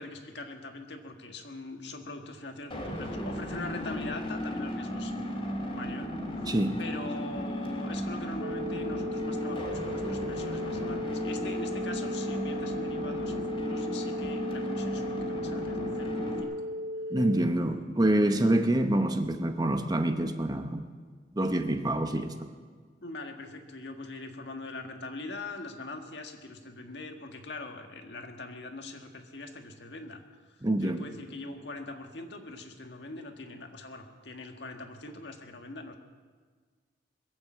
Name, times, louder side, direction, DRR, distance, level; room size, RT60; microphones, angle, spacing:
voice 1, 0.0-5.1 5.6-16.5 23.0-30.2 30.8-35.9, left 2 dB, 70° left, 4 dB, 1.7 m, -42 dB
sound 1, 2.7-16.4, left 1 dB, 30° left, 2.7 m, -35 dB
voice 2, 6.4-6.8 17.1-20.9 21.3-22.5 30.6-31.0, right 1 dB, 20° right, 7 dB, 0.9 m, -26 dB
sound 2, 8.4-17.4, left 1 dB, 55° right, 0.5 m, -36 dB
22.0 x 8.7 x 7.4 m, 1.5 s
head